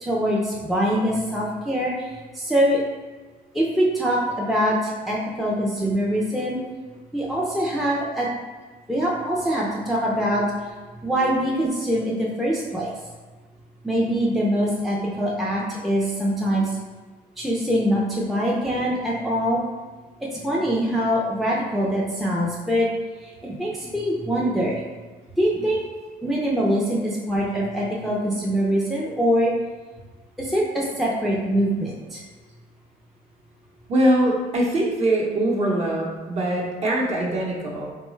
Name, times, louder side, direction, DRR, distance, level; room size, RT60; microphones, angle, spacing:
voice 1, 0.0-2.8 3.5-6.6 7.1-8.3 8.9-10.7 11.0-12.9 13.8-16.8 17.4-19.6 20.2-22.9 23.2-24.8 25.3-25.8 26.2-29.5 30.4-32.2, equal, ahead, -4 dB, 0.4 m, -23 dB
voice 2, 33.9-37.9, right 1 dB, 40° right, -3 dB, 0.8 m, -22 dB
3.8 x 2.2 x 3.1 m, 1.3 s
cardioid pair, 110°, 17 cm